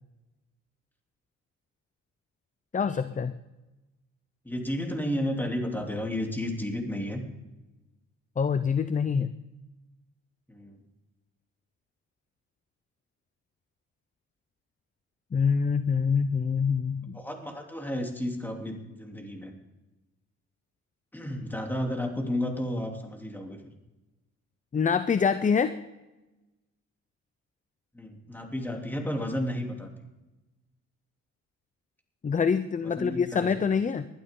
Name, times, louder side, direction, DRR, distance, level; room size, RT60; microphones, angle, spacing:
voice 1, 2.7-3.4 8.4-9.3 15.3-17.2 24.7-25.7 32.2-34.1, left 6 dB, 25° left, 12 dB, 0.6 m, -25 dB
voice 2, 4.4-7.2 10.5-10.8 17.1-19.5 21.1-23.6 27.9-29.9 32.8-33.5, left 1 dB, 5° left, 2 dB, 3.2 m, -32 dB
20.5 x 12.0 x 3.8 m, 1.0 s
cardioid pair, 90°, 30 cm